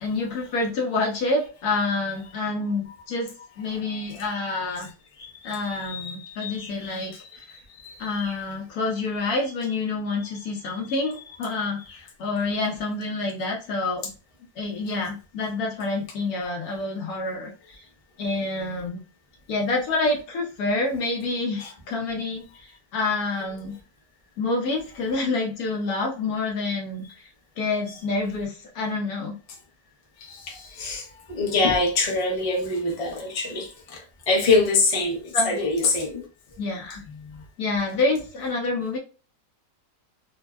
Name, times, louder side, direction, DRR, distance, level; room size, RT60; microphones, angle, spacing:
voice 1, 0.0-3.3 3.6-4.9 5.4-7.5 8.0-14.1 14.6-17.8 18.2-19.0 19.5-23.8 24.4-27.0 27.6-29.4 35.3-35.6 36.6-37.0 37.6-39.0, left 3 dB, 65° left, 1.0 m, -27 dB
voice 2, 5.2-8.4 10.9-11.0 11.9-12.0 21.6-21.7 30.2-36.2, left 3 dB, 40° left, 0.5 m, -26 dB
3.4 x 2.0 x 2.2 m
omnidirectional pair, 1.9 m